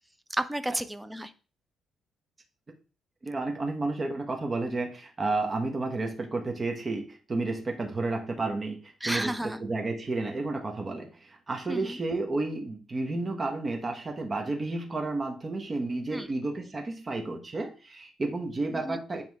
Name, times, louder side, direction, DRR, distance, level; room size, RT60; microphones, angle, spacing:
voice 1, 0.3-1.3 9.0-9.6 11.7-12.0 16.1-16.3 18.7-19.0, right 1 dB, 10° right, 10 dB, 0.7 m, -32 dB
voice 2, 3.2-19.2, right 2 dB, 30° right, 3 dB, 1.4 m, -31 dB
9.4 x 3.5 x 3.6 m, 0.34 s
cardioid pair, 90°, 0 cm